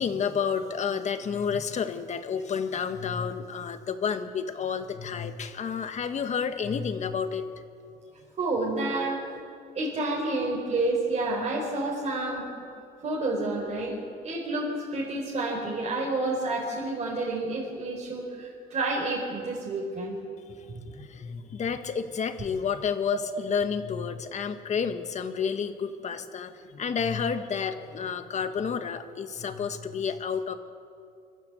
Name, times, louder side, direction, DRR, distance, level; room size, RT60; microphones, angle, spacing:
voice 1, 0.0-7.6 20.9-30.6, left 6 dB, 45° left, 9 dB, 1.5 m, -30 dB
voice 2, 8.4-9.2 9.7-12.4 13.0-14.0 14.2-20.2, right 2 dB, 40° right, -4 dB, 4.7 m, -29 dB
26.0 x 13.0 x 8.4 m, 2.4 s
cardioid pair, 110°, 17 cm